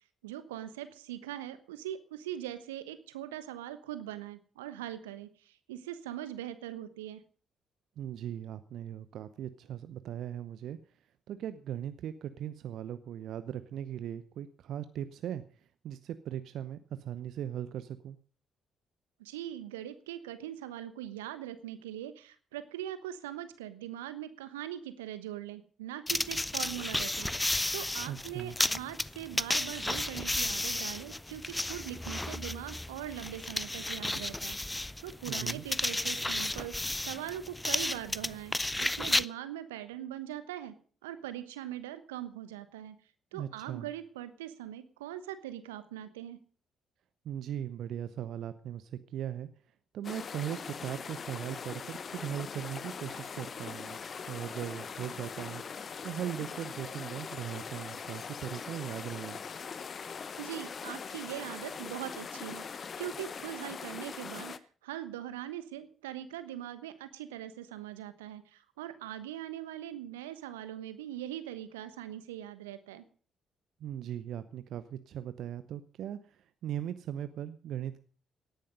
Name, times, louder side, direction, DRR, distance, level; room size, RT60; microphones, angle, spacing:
voice 1, 0.2-7.2 19.2-40.7 41.0-42.9 43.3-46.4 60.0-73.0, right 12 dB, 75° right, 12 dB, 1.1 m, -41 dB
voice 2, 8.0-10.8 11.3-18.2 28.1-28.5 35.3-35.7 43.3-43.9 47.2-49.5 49.9-54.0 54.3-55.6 56.0-59.4 73.8-78.0, right 10 dB, 60° right, 12 dB, 0.8 m, -39 dB
sound 1, 26.1-39.3, left 1 dB, 10° left, 0.6 m, -33 dB
sound 2, 50.0-64.6, left 6 dB, 45° left, 0.9 m, -41 dB
18.0 x 10.5 x 5.3 m, 0.43 s
figure-of-eight pair, 45°, 0 cm